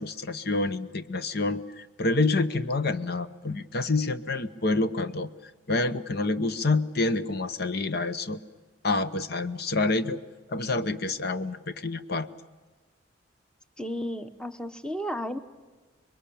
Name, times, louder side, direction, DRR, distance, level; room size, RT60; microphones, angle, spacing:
voice 1, 0.0-5.3 5.7-8.4 8.8-10.2 10.5-12.3, left 3 dB, 60° left, 11 dB, 1.0 m, -27 dB
voice 2, 13.8-15.4, equal, 5° left, 10 dB, 1.1 m, -33 dB
26.5 x 22.5 x 8.6 m, 1.3 s
head